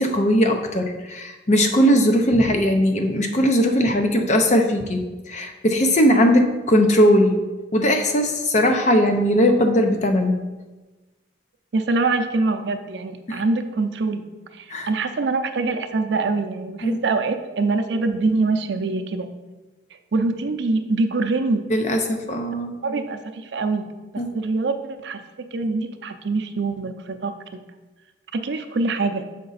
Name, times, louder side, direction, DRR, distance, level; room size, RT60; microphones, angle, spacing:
voice 1, 0.0-7.4 7.7-10.4 13.3-13.4 14.7-14.9 16.8-17.0 21.7-22.7 24.2-24.3, equal, 40° left, 5 dB, 0.6 m, -19 dB
voice 2, 11.7-19.3 20.1-21.7 22.8-27.6 28.3-29.2, right 3 dB, 70° right, 8 dB, 0.5 m, -24 dB
6.6 x 5.1 x 4.0 m, 1.2 s
head